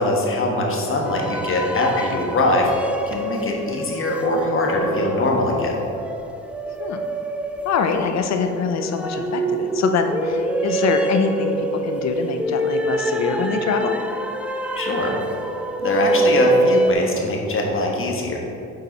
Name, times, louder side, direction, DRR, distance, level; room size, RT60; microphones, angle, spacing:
voice 1, 0.0-2.7 3.1-5.7 14.8-15.2 15.8-18.4, left 2 dB, 45° left, 0 dB, 1.3 m, -22 dB
sound 1, 1.0-16.9, right 1 dB, 5° right, 0.4 m, -25 dB
voice 2, 7.6-13.9, left 5 dB, 60° left, 6 dB, 0.7 m, -24 dB
7.7 x 4.6 x 4.1 m, 2.7 s
cardioid pair, 90°, 30 cm